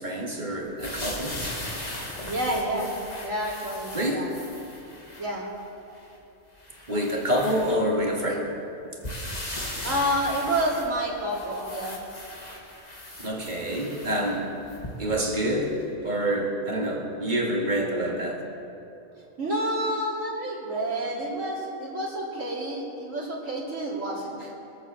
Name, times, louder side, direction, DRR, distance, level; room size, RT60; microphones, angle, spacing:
voice 1, 0.0-1.4 3.9-4.3 6.9-8.5 13.2-14.5 15.0-15.8 16.0-18.4, right 1 dB, 35° right, -1 dB, 2.1 m, -27 dB
sound 1, 0.8-5.3 5.9-6.1 6.6-8.2 9.0-15.2 15.8-15.9, left 1 dB, 30° left, 2.0 m, -38 dB
voice 2, 2.3-2.9 3.2-4.3 5.2-5.5 9.8-12.0 19.4-24.5, right 1 dB, 75° right, -4 dB, 3.0 m, -29 dB
22.0 x 8.1 x 7.4 m, 2.7 s
omnidirectional pair, 1.4 m